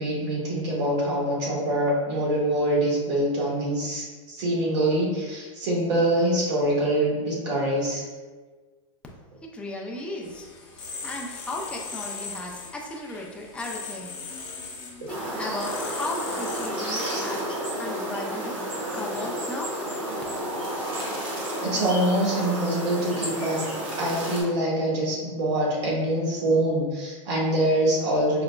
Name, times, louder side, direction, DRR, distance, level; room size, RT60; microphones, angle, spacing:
voice 1, 0.0-8.0 21.6-23.6 23.9-28.4, right 1 dB, 60° right, -4 dB, 1.3 m, -24 dB
voice 2, 9.4-10.5 10.7-14.2 15.1-18.6 18.9-19.8, left 2 dB, 5° left, -1 dB, 0.4 m, -36 dB
sound 1, 10.2-16.7, left 4 dB, 65° left, 0.9 m, -39 dB
sound 2, 15.1-24.4, right 1 dB, 80° right, 1.3 m, -31 dB
4.8 x 2.1 x 2.2 m, 1.4 s
hypercardioid pair, 130°, 17 cm